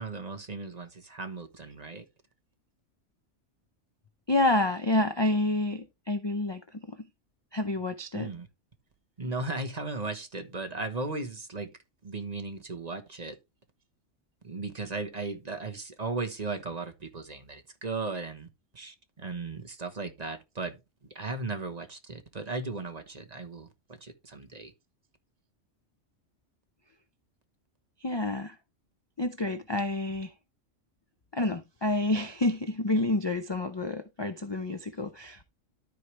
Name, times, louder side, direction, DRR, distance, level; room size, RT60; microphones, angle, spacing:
voice 1, 0.0-2.0 8.1-8.5 9.2-11.7 12.0-13.3 14.4-18.5 18.7-20.8 21.1-23.7 24.0-24.7, right 3 dB, 35° right, 1.2 m, -36 dB
voice 2, 4.3-7.0 7.5-8.3 28.0-28.5 29.2-30.3 31.3-35.4, left 2 dB, 35° left, 0.4 m, -28 dB
13.0 x 4.7 x 3.3 m
omnidirectional pair, 1.3 m